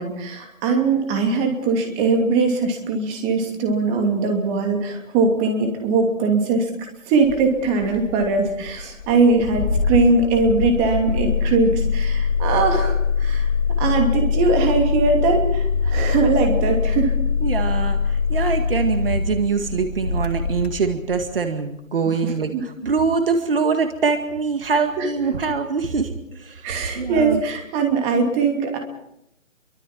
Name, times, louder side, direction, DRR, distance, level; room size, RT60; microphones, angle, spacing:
voice 1, 0.0-6.7 7.1-13.5 13.8-17.2 22.5-22.6 25.0-25.1 26.6-28.8, right 4 dB, 15° right, 4 dB, 2.8 m, -21 dB
Engine starting, 7.2-21.4, left 5 dB, 50° left, 2.8 m, -23 dB
voice 2, 17.4-27.4, right 5 dB, 45° right, 7 dB, 2.1 m, -23 dB
29.0 x 24.0 x 4.6 m, 0.80 s
figure-of-eight pair, 145°, 39 cm